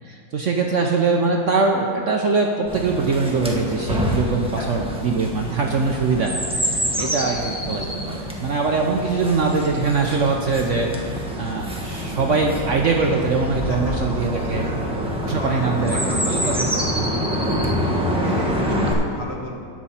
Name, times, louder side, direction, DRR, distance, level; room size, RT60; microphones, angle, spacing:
voice 1, 0.0-14.7 15.2-16.9, right 4 dB, 55° right, 1 dB, 0.9 m, -22 dB
Chirp tweet, 2.7-18.9, equal, 5° right, 0.8 m, -26 dB
voice 2, 6.6-7.2 13.7-13.9 14.5-16.8 18.1-19.5, left 1 dB, 40° left, -1 dB, 1.3 m, -34 dB
18.0 x 6.0 x 4.2 m, 2.6 s
omnidirectional pair, 1.8 m